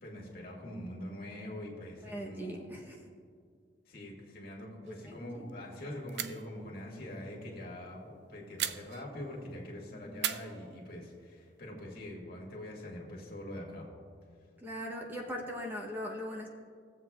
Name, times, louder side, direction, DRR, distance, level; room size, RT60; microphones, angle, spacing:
voice 1, 0.0-2.7 3.9-13.9, left 1 dB, 55° left, -2 dB, 1.9 m, -44 dB
voice 2, 2.0-2.9 4.9-5.4 9.9-10.4 14.6-16.5, equal, 10° right, -1 dB, 0.8 m, -40 dB
sound 1, 4.8-5.2 5.5-5.6 6.1-6.6 8.6-9.4 10.2-11.3, right 11 dB, 65° right, 0.4 m, -39 dB
18.0 x 7.6 x 2.3 m, 2.1 s
head